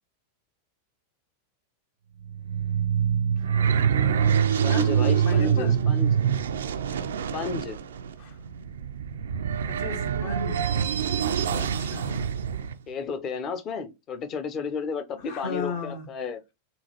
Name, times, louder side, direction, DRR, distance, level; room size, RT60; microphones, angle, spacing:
sound 1, 2.2-12.7, right 8 dB, 65° right, 0.4 m, -25 dB
voice 1, 4.1-4.9 5.2-5.8 8.2-8.3 9.7-10.8 11.2-12.3 15.3-16.0, left 4 dB, 50° left, 1.2 m, -35 dB
voice 2, 4.6-6.1 7.3-7.8 12.9-16.4, left 5 dB, 30° left, 0.8 m, -32 dB
6.9 x 2.4 x 2.9 m
figure-of-eight pair, 90°, 0 cm